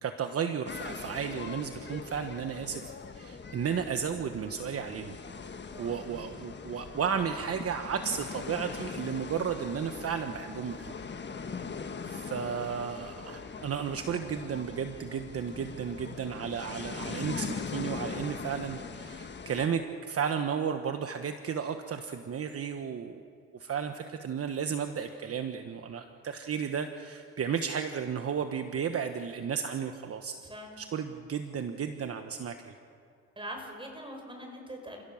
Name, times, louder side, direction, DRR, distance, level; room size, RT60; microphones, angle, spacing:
voice 1, 0.0-5.2 5.8-10.9 12.0-23.2 23.5-30.4 30.7-32.7, right 7 dB, 50° right, 7 dB, 1.3 m, -33 dB
sound 1, 0.7-19.7, left 5 dB, 35° left, 1.5 m, -41 dB
voice 2, 33.4-35.0, equal, 15° right, 3 dB, 5.8 m, -43 dB
30.0 x 16.5 x 7.3 m, 2.4 s
cardioid pair, 90°, 30 cm